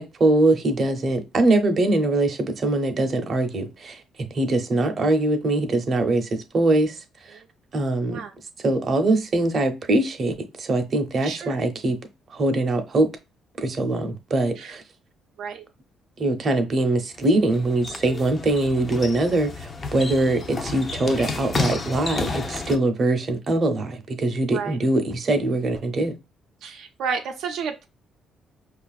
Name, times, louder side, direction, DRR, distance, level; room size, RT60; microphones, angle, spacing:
voice 1, 0.0-6.9 7.7-8.2 8.6-12.0 12.3-13.1 13.6-14.8 16.2-26.1, right 2 dB, 40° right, 0.7 m, -22 dB
voice 2, 11.2-11.6 14.6-14.8 15.4-15.6 24.5-24.8 26.6-27.9, right 6 dB, 75° right, 0.5 m, -31 dB
sound 1, 17.1-22.8, left 3 dB, 30° left, 0.5 m, -31 dB
5.2 x 2.4 x 2.3 m
cardioid pair, 115°, 0 cm